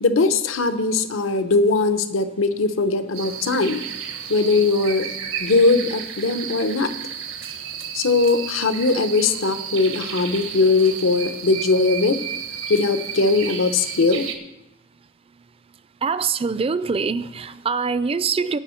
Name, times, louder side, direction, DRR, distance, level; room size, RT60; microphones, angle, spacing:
voice 1, 0.0-3.9 4.3-5.1 5.4-6.9 7.9-12.2 12.7-14.3, left 3 dB, 75° left, 10 dB, 0.8 m, -20 dB
sound 1, 3.1-14.4, right 8 dB, 90° right, 1.4 m, -32 dB
voice 2, 16.0-18.6, right 5 dB, 30° right, 15 dB, 0.4 m, -24 dB
18.0 x 6.3 x 4.4 m, 0.94 s
head